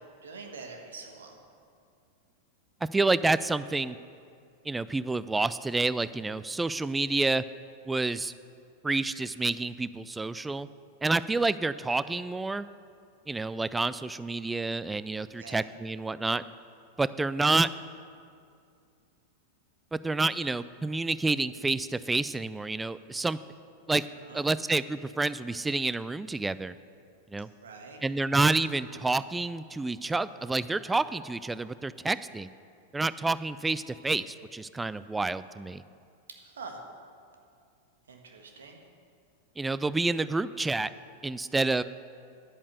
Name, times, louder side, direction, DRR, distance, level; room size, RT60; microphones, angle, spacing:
voice 1, 0.0-1.3 15.4-15.7 24.3-24.4 27.6-28.0 36.3-36.8 38.1-38.8, right 4 dB, 65° right, 3 dB, 1.6 m, -45 dB
voice 2, 2.8-4.0 4.7-7.4 7.9-8.3 8.8-10.7 11.0-12.7 13.3-16.4 17.0-17.7 19.9-23.4 23.9-24.0 24.3-26.7 27.3-27.5 28.0-32.5 32.9-35.8 39.6-40.9 41.2-41.8, right 3 dB, 10° right, 15 dB, 0.3 m, -28 dB
10.5 x 8.5 x 6.5 m, 2.4 s
figure-of-eight pair, 90°, 0 cm